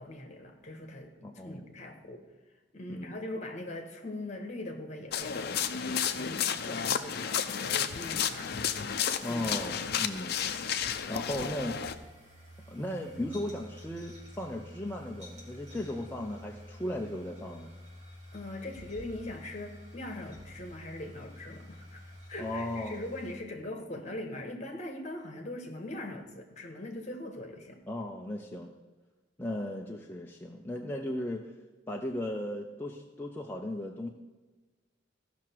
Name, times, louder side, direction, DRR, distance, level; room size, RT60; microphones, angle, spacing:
voice 1, 0.0-2.2 2.7-8.6 9.3-9.4 18.3-22.0 22.3-27.8, left 1 dB, 40° left, 4 dB, 1.5 m, -41 dB
voice 2, 1.2-1.7 2.9-3.2 9.2-10.4 11.1-11.8 12.7-17.7 22.4-23.0 27.9-28.7 29.4-31.4 31.9-34.1, left 1 dB, 10° left, 0 dB, 0.6 m, -36 dB
sound 1, 5.1-11.9, left 8 dB, 60° left, 0.6 m, -32 dB
sound 2, 5.1-23.3, left 1 dB, 40° right, 2.8 m, -51 dB
15.5 x 6.0 x 4.6 m, 1.2 s
head